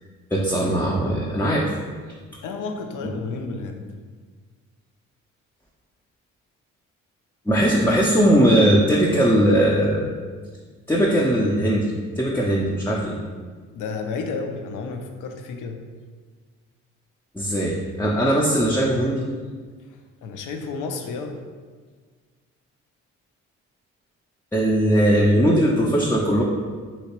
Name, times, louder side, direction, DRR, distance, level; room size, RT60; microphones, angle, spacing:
voice 1, 0.3-1.7 3.4-3.5 7.5-10.1 10.9-13.2 17.3-19.2 24.5-26.4, right 1 dB, 5° left, -4 dB, 0.4 m, -19 dB
voice 2, 2.4-3.9 13.7-15.9 20.2-21.4, left 4 dB, 65° left, 5 dB, 0.5 m, -31 dB
3.1 x 2.8 x 2.9 m, 1.5 s
supercardioid pair, 55°, 33 cm